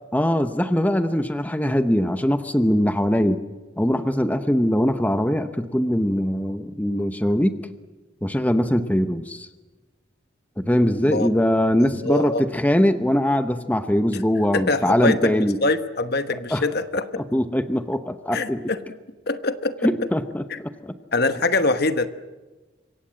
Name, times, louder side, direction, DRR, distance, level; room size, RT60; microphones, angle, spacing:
voice 1, 0.1-3.4 3.8-7.6 8.2-9.5 10.6-15.6 16.5-16.6 17.2-18.7 19.8-20.9, equal, 10° left, 9 dB, 0.8 m, -22 dB
voice 2, 12.0-12.4 14.1-14.2 14.5-17.2 18.3-18.8 19.3-19.9 20.5-20.6 21.1-22.1, left 3 dB, 50° left, 10 dB, 1.1 m, -24 dB
26.5 x 23.5 x 7.6 m, 1.2 s
head